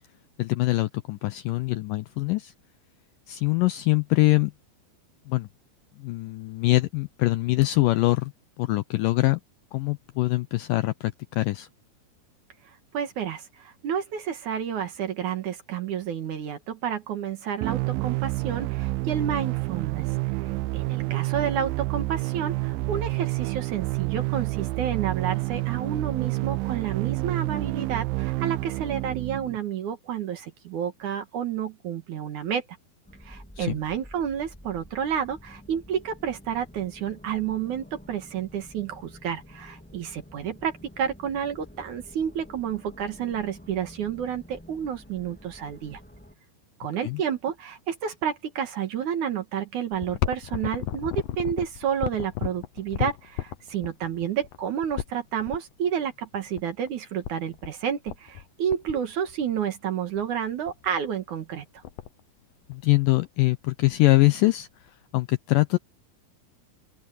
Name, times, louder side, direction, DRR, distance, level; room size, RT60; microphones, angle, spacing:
voice 1, 0.4-2.5 3.3-4.5 5.3-5.5 6.0-8.3 8.6-9.4 9.7-11.7 33.6-33.8 47.0-47.2 62.7-64.7 65.1-65.8, left 20 dB, 85° left, 2.0 m, -23 dB
voice 2, 12.6-32.6 33.2-46.0 46.8-61.8, right 8 dB, 60° right, 2.6 m, -30 dB
sound 1, 17.6-29.6, right 23 dB, 85° right, 2.0 m, -28 dB
sound 2, 33.0-46.3, left 1 dB, 5° left, 1.2 m, -49 dB
Alcantarillado electrico, 49.9-55.6 56.5-56.6 56.9-57.0 57.2-57.7 58.1-58.4 58.7-59.6 60.2-60.3 60.7-61.0 61.3-61.4 61.6-62.2 62.7-63.5 63.9-64.0 64.9-65.0, left 13 dB, 70° left, 2.3 m, -33 dB
open air
omnidirectional pair, 4.5 m